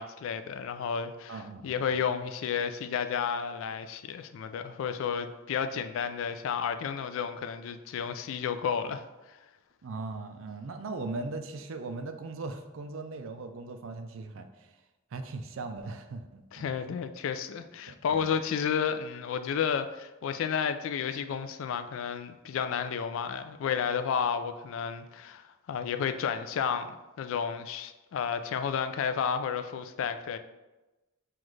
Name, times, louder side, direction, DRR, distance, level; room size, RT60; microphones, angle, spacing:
voice 1, 0.0-9.4 16.5-30.4, left 7 dB, 65° left, 10 dB, 0.3 m, -32 dB
voice 2, 1.3-2.0 9.8-14.7 15.1-17.0 17.9-18.3, right 3 dB, 65° right, 7 dB, 0.4 m, -39 dB
6.0 x 2.4 x 3.1 m, 1.1 s
head